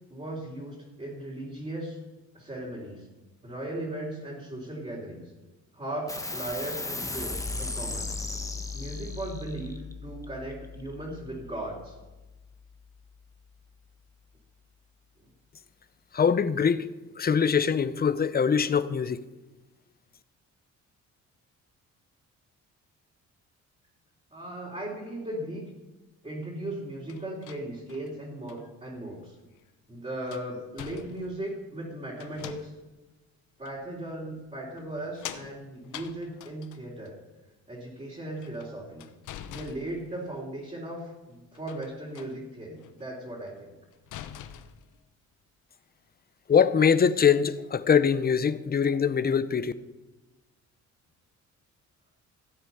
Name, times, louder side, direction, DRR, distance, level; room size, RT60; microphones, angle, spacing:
voice 1, 0.1-2.0 2.3-3.1 3.4-5.3 5.7-8.1 8.7-9.8 10.0-11.9 15.2-15.3 24.3-25.7 26.2-29.4 29.9-32.7 33.6-37.2 37.7-39.0 39.5-43.8, right 1 dB, 20° right, 3.6 m, -37 dB
sound 1, 6.1-13.0, left 3 dB, 10° left, 1.2 m, -37 dB
voice 2, 16.1-16.9 17.2-19.2 46.5-49.7, left 7 dB, 30° left, 0.8 m, -23 dB
sound 2, 27.1-28.7 29.6-29.7 30.2-31.5 32.1-33.0 33.7-33.8 34.8-37.1 38.3-40.4 41.6-42.4 42.8-43.1 43.5-43.6 43.9-45.0, left 10 dB, 80° left, 0.9 m, -45 dB
15.5 x 8.0 x 5.7 m
cardioid pair, 90°, 30 cm